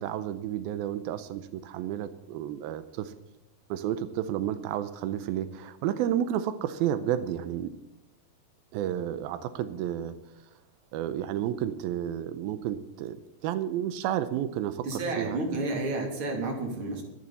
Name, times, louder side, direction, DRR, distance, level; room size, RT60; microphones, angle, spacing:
voice 1, 0.0-3.1 3.7-7.7 8.7-10.2 10.9-15.4, right 11 dB, 90° right, 12 dB, 2.6 m, -31 dB
voice 2, 14.8-17.0, right 2 dB, 35° right, 1 dB, 3.5 m, -31 dB
24.0 x 11.0 x 4.2 m, 0.91 s
omnidirectional pair, 4.2 m